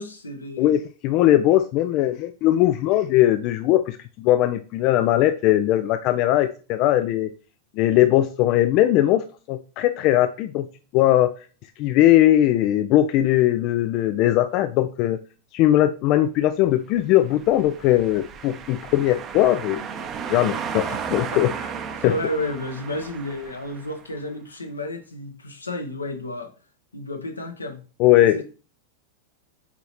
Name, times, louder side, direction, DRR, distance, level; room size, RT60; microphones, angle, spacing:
voice 1, 0.0-0.8 20.9-21.0 21.3-21.4 22.0-26.5 26.9-27.8 28.2-28.4, left 1 dB, 80° left, 1.0 m, -31 dB
voice 2, 0.6-7.3 7.8-10.7 10.9-11.3 11.8-15.2 15.5-19.8 20.3-21.5 22.0-22.1 28.0-28.4, left 13 dB, 40° left, 0.3 m, -19 dB
sound 1, 17.3-24.0, right 6 dB, 30° right, 0.7 m, -34 dB
8.3 x 4.0 x 3.0 m
figure-of-eight pair, 90°, 0 cm